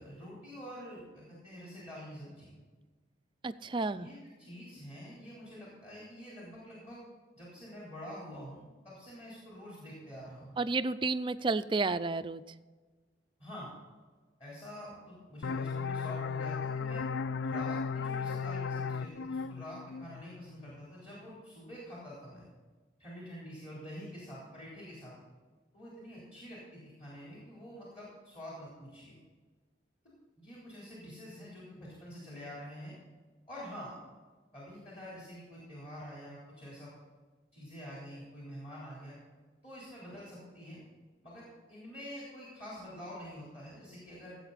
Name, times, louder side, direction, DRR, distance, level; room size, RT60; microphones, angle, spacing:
voice 1, 0.0-2.5 3.9-7.0 7.3-10.6 13.4-13.7 14.4-17.0 17.4-22.5 23.0-25.1 25.7-29.2 30.4-32.9 33.5-33.9 34.5-36.9 37.5-39.2 39.6-40.8 41.2-44.4, equal, 30° left, -7 dB, 3.7 m, -47 dB
voice 2, 3.4-4.1 10.6-12.4, right 3 dB, 25° right, 13 dB, 0.4 m, -31 dB
sound 1, 15.4-20.8, left 5 dB, 75° left, 0.4 m, -35 dB
16.5 x 7.8 x 4.1 m, 1.3 s
head